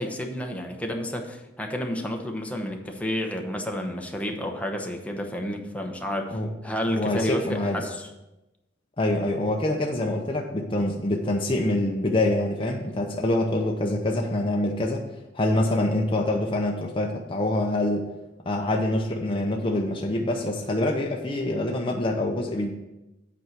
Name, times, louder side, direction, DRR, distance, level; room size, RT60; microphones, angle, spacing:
voice 1, 0.0-6.4 6.6-8.1, equal, 10° left, 2 dB, 0.9 m, -30 dB
voice 2, 6.9-7.8 9.0-15.0 15.3-18.1 18.5-22.7, left 1 dB, 30° left, 0 dB, 0.7 m, -25 dB
8.4 x 4.6 x 6.5 m, 1.0 s
head